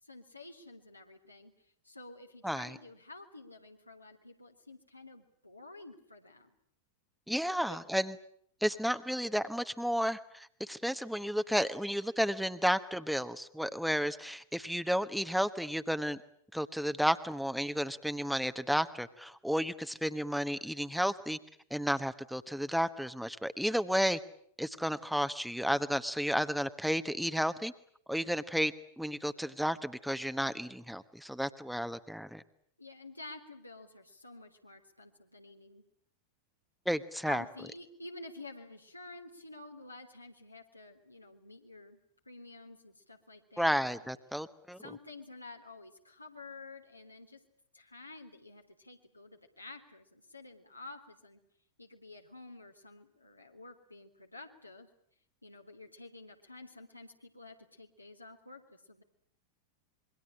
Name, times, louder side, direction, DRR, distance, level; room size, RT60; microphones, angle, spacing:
voice 1, 0.0-1.5 1.8-6.5 7.7-7.8 32.8-35.8 37.2-42.0 42.2-44.1 44.8-47.4 47.7-51.4 51.8-54.9 55.4-59.0, left 2 dB, 85° left, 3 dB, 3.4 m, -50 dB
voice 2, 2.4-2.7 7.3-8.1 8.6-16.2 16.5-21.4 21.7-24.2 24.6-27.7 28.1-32.4 36.9-37.4 43.6-44.8, equal, ahead, 11 dB, 1.2 m, -32 dB
27.0 x 23.0 x 8.9 m, 0.64 s
figure-of-eight pair, 90°, 0 cm